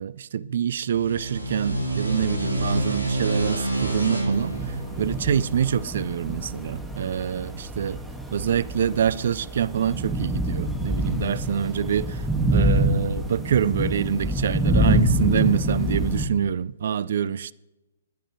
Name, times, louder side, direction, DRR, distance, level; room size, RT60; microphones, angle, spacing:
voice 1, 0.0-4.5 5.0-7.9 8.3-12.2 12.5-17.5, right 8 dB, 55° right, 0.4 m, -25 dB
sound 1, 0.8-6.1, right 1 dB, 80° right, 2.8 m, -28 dB
sound 2, 4.3-16.3, equal, 5° right, 1.7 m, -26 dB
19.5 x 10.0 x 3.1 m
figure-of-eight pair, 120°, 0 cm